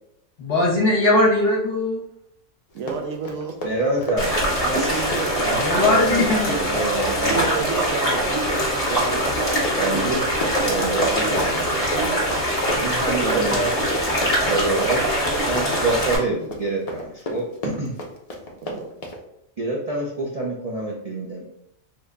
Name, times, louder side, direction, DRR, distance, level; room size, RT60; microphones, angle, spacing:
voice 1, 0.4-2.0 5.5-6.5, left 2 dB, 50° left, -2 dB, 1.0 m, -20 dB
Run, 2.7-19.2, left 1 dB, 70° left, 0.3 m, -33 dB
voice 2, 2.7-3.6 4.6-5.6 7.3-8.4 8.9-9.3 13.2-13.7 18.6-18.8, right 5 dB, 85° right, 4 dB, 1.0 m, -30 dB
voice 3, 3.6-4.3 5.8-6.2 6.7-7.5 9.8-10.2 10.6-13.7 14.4-15.1 15.5-18.0 19.6-21.4, right 2 dB, 60° right, -3 dB, 0.4 m, -26 dB
sound 1, 4.2-16.2, equal, 30° left, 1.1 m, -23 dB
3.3 x 2.2 x 3.7 m, 0.76 s
omnidirectional pair, 1.4 m